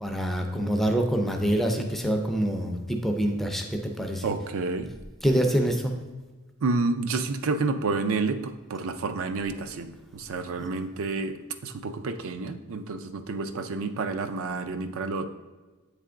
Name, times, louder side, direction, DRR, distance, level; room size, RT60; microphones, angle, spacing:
voice 1, 0.0-4.3 5.2-5.9, right 1 dB, ahead, 3 dB, 0.5 m, -26 dB
voice 2, 4.2-4.9 6.6-15.3, right 3 dB, 65° right, 9 dB, 0.5 m, -29 dB
8.3 x 3.4 x 3.7 m, 1.2 s
head